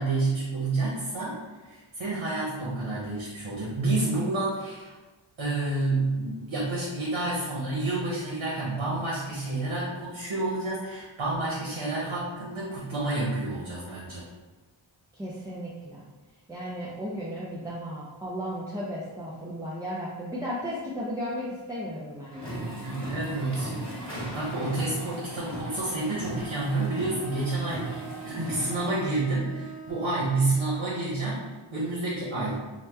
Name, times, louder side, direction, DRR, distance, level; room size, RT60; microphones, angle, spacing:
voice 1, 0.0-1.4 1.6-4.9 5.4-14.2 22.8-23.7 24.1-32.6, right 2 dB, 90° right, -7 dB, 0.8 m, -29 dB
voice 2, 15.1-16.1 16.5-22.6, equal, 10° right, -7 dB, 0.4 m, -35 dB
sound 1, 22.3-29.0, right 1 dB, 10° left, 1.2 m, -37 dB
Bowed string instrument, 25.2-30.2, right 5 dB, 50° left, 0.6 m, -43 dB
2.9 x 2.1 x 3.3 m, 1.2 s
wide cardioid pair, 55°, 47 cm